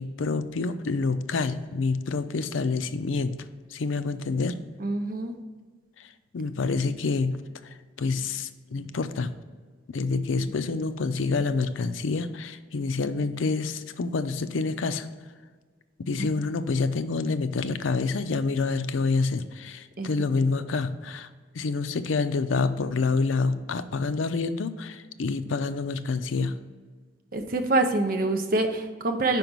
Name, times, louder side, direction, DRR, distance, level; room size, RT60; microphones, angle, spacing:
voice 1, 0.0-3.4 3.7-4.6 6.0-6.1 6.3-9.3 9.9-15.1 16.0-21.3 21.5-26.5, left 4 dB, 80° left, 12 dB, 0.5 m, -27 dB
voice 2, 4.8-5.3 20.0-20.7 27.3-29.4, right 2 dB, 45° right, 6 dB, 0.7 m, -26 dB
5.3 x 5.0 x 6.0 m, 1.5 s
head